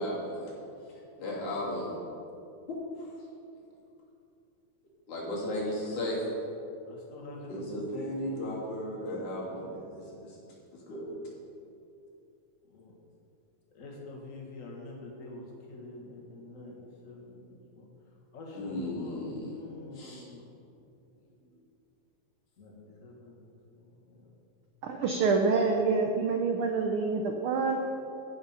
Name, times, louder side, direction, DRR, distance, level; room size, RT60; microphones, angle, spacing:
voice 1, 0.0-2.0 2.7-3.1 5.1-6.2 7.5-10.4 10.7-11.2 18.6-19.6 19.9-20.2, left 1 dB, 90° left, -6 dB, 4.4 m, -35 dB
voice 2, 6.9-8.4 12.7-12.9 13.7-17.9 18.3-20.8 21.1-21.7 22.6-24.3, left 2 dB, 35° left, -1 dB, 1.6 m, -47 dB
voice 3, 24.8-27.8, right 4 dB, 80° right, 3 dB, 1.2 m, -27 dB
15.0 x 5.8 x 5.7 m, 2.6 s
omnidirectional pair, 3.3 m